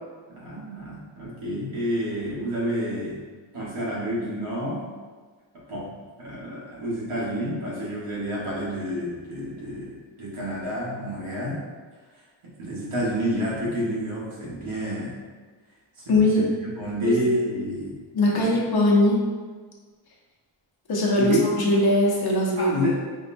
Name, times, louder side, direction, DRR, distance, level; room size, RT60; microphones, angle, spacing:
voice 1, 0.3-3.2 3.5-4.8 5.7-5.9 6.2-11.6 12.1-15.2 16.0-17.9 18.3-18.5 21.2-21.4 22.6-23.0, equal, 90° right, -7 dB, 1.4 m, -29 dB
voice 2, 16.1-16.4 17.0-17.1 18.1-19.2 20.9-22.7, left 1 dB, 50° left, -3 dB, 0.8 m, -20 dB
5.1 x 2.2 x 2.6 m, 1.4 s
wide cardioid pair, 110°, 49 cm